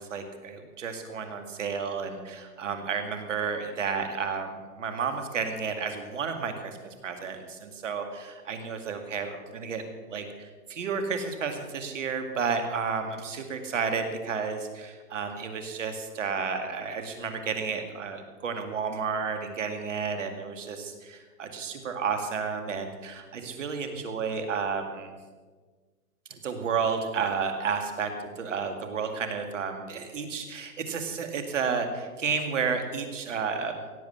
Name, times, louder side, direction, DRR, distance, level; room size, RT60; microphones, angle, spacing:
voice 1, 0.0-6.8 7.0-25.1 26.4-33.7, right 5 dB, 50° right, 6 dB, 2.2 m, -32 dB
17.0 x 7.7 x 7.2 m, 1.4 s
hypercardioid pair, 165°, 46 cm